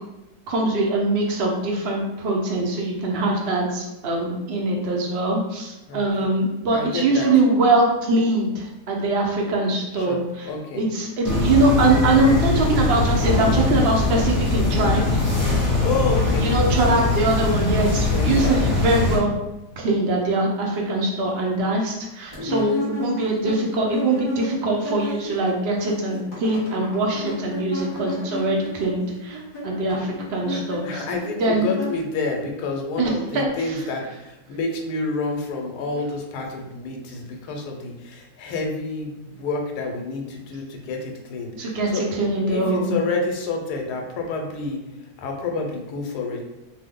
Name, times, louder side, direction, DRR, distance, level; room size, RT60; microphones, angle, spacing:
voice 1, 0.5-15.2 16.4-19.3 19.8-31.0 31.4-31.6 33.0-33.8 41.6-43.0, right 2 dB, 60° right, -1 dB, 0.6 m, -22 dB
voice 2, 6.7-7.3 10.0-10.2 10.4-10.8 15.8-17.0 18.1-18.4 22.5-22.7 30.5-42.0 42.5-44.8 45.2-46.4, left 3 dB, 80° left, 2 dB, 1.1 m, -29 dB
sound 1, 11.2-19.2, left 3 dB, 10° right, 0.7 m, -21 dB
sound 2, 22.3-25.5 25.7-32.4, left 1 dB, 35° left, 1.1 m, -33 dB
2.7 x 2.1 x 3.5 m, 0.96 s
omnidirectional pair, 1.7 m